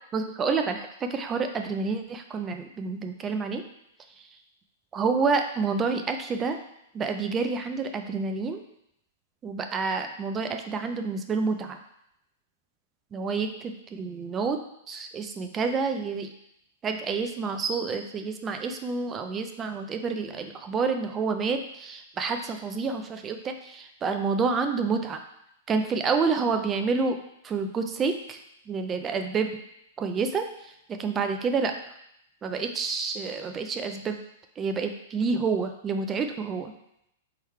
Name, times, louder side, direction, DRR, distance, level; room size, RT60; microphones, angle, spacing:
voice 1, 0.1-3.6 4.9-6.6 6.9-8.6 9.4-11.8 13.1-14.6 14.9-16.3 16.8-25.2 25.7-27.2 27.4-28.4 28.7-29.5 30.0-30.7 31.0-31.7 32.4-34.2 34.6-36.7, right 4 dB, 20° right, 6 dB, 0.3 m, -28 dB
3.7 x 3.0 x 4.5 m, 0.78 s
hypercardioid pair, 145°, 0 cm